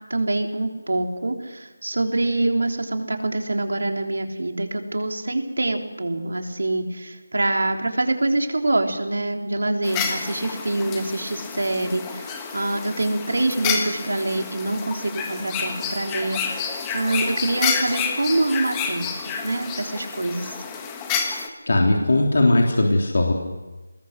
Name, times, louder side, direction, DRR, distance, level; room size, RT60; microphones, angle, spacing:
voice 1, 0.1-20.6, right 2 dB, 80° right, 3 dB, 3.5 m, -25 dB
sound 1, 9.8-21.5, left 6 dB, 10° left, 1.4 m, -29 dB
voice 2, 21.7-23.3, left 2 dB, 60° left, 0 dB, 3.5 m, -18 dB
25.0 x 20.0 x 6.5 m, 1.2 s
figure-of-eight pair, 170°, 0 cm